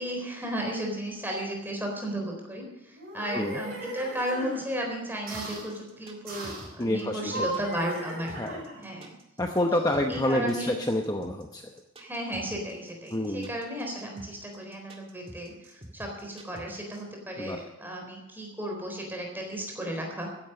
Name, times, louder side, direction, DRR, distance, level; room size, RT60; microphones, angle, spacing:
voice 1, 0.0-8.4 8.8-9.1 9.7-10.7 12.0-20.3, right 1 dB, 10° right, 1 dB, 4.0 m, -34 dB
sound 1, 2.9-4.6 5.3-5.7 6.3-6.7 7.2-8.9, right 1 dB, 50° right, 6.0 m, -37 dB
sound 2, 5.3-17.0, right 1 dB, 30° right, 2.0 m, -47 dB
voice 2, 6.8-7.6 8.4-8.6 9.4-11.7 13.1-13.5 17.4-17.6, left 1 dB, 20° left, 3 dB, 0.8 m, -28 dB
14.5 x 11.0 x 6.5 m, 0.96 s
head